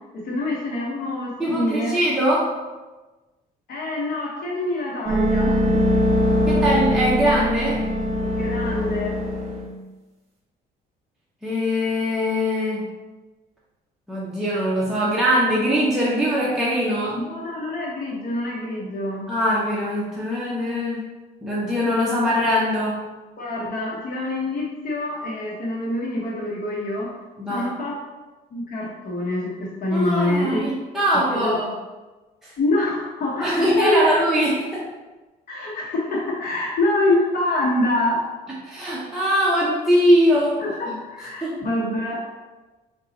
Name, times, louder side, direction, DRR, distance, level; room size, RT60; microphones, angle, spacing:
voice 1, 0.1-2.0 3.7-5.7 8.2-9.2 17.1-19.2 23.4-27.1 27.5-28.0 28.5-30.7 31.3-31.6 32.6-34.0 35.5-38.2 40.6-42.2, left 1 dB, 60° left, -4 dB, 1.0 m, -25 dB
voice 2, 1.4-2.5 6.5-7.8 11.4-12.9 14.1-17.2 19.3-21.0 21.4-23.0 27.4-27.7 29.9-31.7 32.4-32.5 33.4-34.8 38.7-40.6 41.4-41.6, equal, ahead, -7 dB, 0.7 m, -21 dB
sound 1, 5.0-9.7, equal, 40° right, 1.1 m, -21 dB
3.9 x 2.3 x 4.0 m, 1.2 s
cardioid pair, 110°, 17 cm